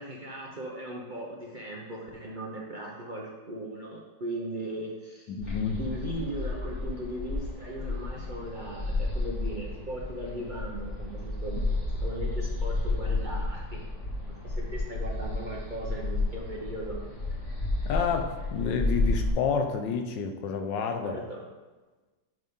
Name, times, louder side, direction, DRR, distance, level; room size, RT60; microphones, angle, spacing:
voice 1, 0.0-5.3 5.8-13.8 14.3-17.0 21.0-21.4, right 1 dB, 45° right, -3 dB, 0.6 m, -38 dB
voice 2, 5.3-5.8 17.9-21.2, left 6 dB, 85° left, 6 dB, 1.5 m, -29 dB
sound 1, 5.4-19.3, left 2 dB, 40° left, 2.3 m, -32 dB
9.7 x 4.0 x 3.6 m, 1.2 s
omnidirectional pair, 1.9 m